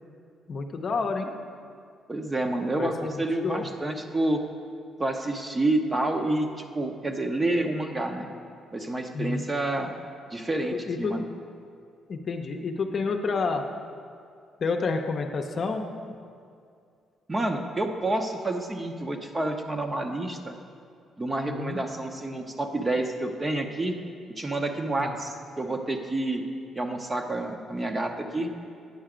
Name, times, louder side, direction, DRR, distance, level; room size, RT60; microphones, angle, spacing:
voice 1, 0.5-1.3 2.8-3.7 9.1-9.5 10.9-11.2 12.1-13.6 14.6-16.1 21.4-21.8 25.0-25.1, left 4 dB, 50° left, 3 dB, 0.6 m, -29 dB
voice 2, 2.1-4.4 5.0-8.3 8.7-9.9 10.3-11.2 17.3-20.5 21.2-24.0 24.4-26.4 26.7-28.5, right 2 dB, 25° right, 4 dB, 0.7 m, -28 dB
9.4 x 5.6 x 5.0 m, 2.3 s
cardioid pair, 90°, 0 cm